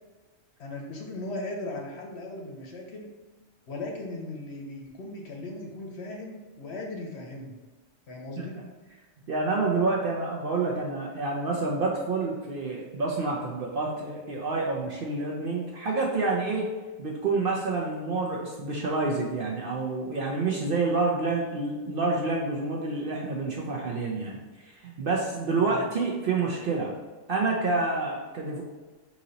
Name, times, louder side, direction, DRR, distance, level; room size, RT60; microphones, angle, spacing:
voice 1, 0.6-3.1 3.7-7.5 8.1-8.6 25.6-25.8, left 2 dB, 60° left, 1 dB, 0.9 m, -38 dB
voice 2, 9.3-16.7 17.0-26.9 27.3-28.6, right 3 dB, 55° right, -2 dB, 0.6 m, -28 dB
4.0 x 2.8 x 3.9 m, 1.3 s
omnidirectional pair, 1.3 m